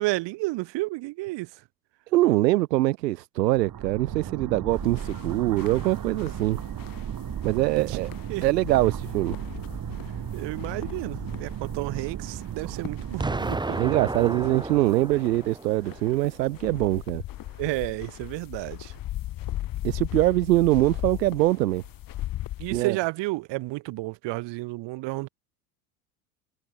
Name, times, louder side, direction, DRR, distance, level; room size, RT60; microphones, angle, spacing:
voice 1, 0.0-1.5 7.9-8.0 8.3-8.4 10.3-13.8 17.6-18.9 22.6-25.3, right 22 dB, 60° right, 3.6 m, -31 dB
voice 2, 2.1-6.6 7.4-8.1 8.4-9.4 12.6-12.8 13.8-17.2 19.8-21.8 22.7-23.0, right 17 dB, 85° right, 0.6 m, -23 dB
sound 1, 3.4-13.6, right 9 dB, 40° right, 7.0 m, -35 dB
sound 2, 4.7-22.8, left 14 dB, 45° left, 1.3 m, -39 dB
Explosion, 13.2-16.2, right 2 dB, 10° right, 1.7 m, -32 dB
hypercardioid pair, 70°, 48 cm